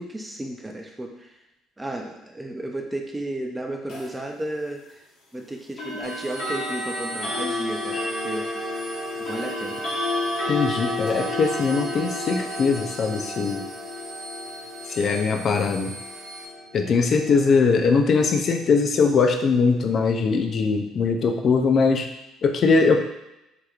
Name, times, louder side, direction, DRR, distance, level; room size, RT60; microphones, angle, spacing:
voice 1, 0.0-1.3 1.8-5.0 5.3-8.5 9.2-9.9, right 1 dB, 10° right, 2 dB, 0.5 m, -33 dB
sound 1, 3.9-4.1 5.8-18.6, left 1 dB, 65° left, 1.1 m, -31 dB
sound 2, 6.0-16.5, right 1 dB, 60° right, 0.6 m, -41 dB
voice 2, 10.5-13.7 14.9-15.9 16.7-22.1 22.4-23.0, left 4 dB, 50° left, 5 dB, 0.4 m, -21 dB
3.4 x 2.9 x 2.4 m, 0.90 s
supercardioid pair, 95°, 0 cm